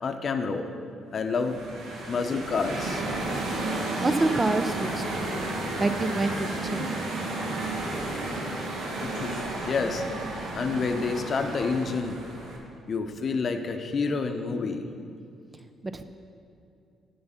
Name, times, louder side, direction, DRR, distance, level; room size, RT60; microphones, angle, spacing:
voice 1, 0.0-0.7 1.1-1.6 2.1-3.0 9.0-10.0 10.5-12.2 12.9-14.9, left 4 dB, 50° left, 6 dB, 0.7 m, -28 dB
sound 1, 1.2-12.6, right 2 dB, 80° right, 1.4 m, -32 dB
voice 2, 4.0-5.4 5.8-6.9 15.8-16.0, right 2 dB, 25° right, 9 dB, 0.5 m, -27 dB
7.6 x 6.9 x 5.7 m, 2.5 s
cardioid pair, 90°, 0 cm